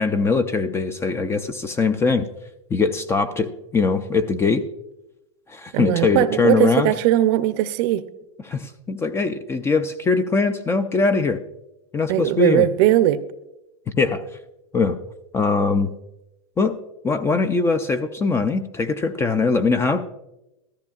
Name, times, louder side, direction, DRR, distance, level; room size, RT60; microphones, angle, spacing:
voice 1, 0.0-2.3 2.7-4.6 5.5-6.9 8.4-11.4 11.9-12.7 14.0-14.2 14.7-15.0 15.3-15.9 16.6-16.8 17.0-20.1, left 4 dB, 15° left, 11 dB, 0.4 m, -21 dB
voice 2, 5.7-8.0 12.1-13.2, right 13 dB, 50° right, 13 dB, 0.6 m, -19 dB
14.5 x 13.0 x 2.4 m, 0.90 s
supercardioid pair, 135°, 18 cm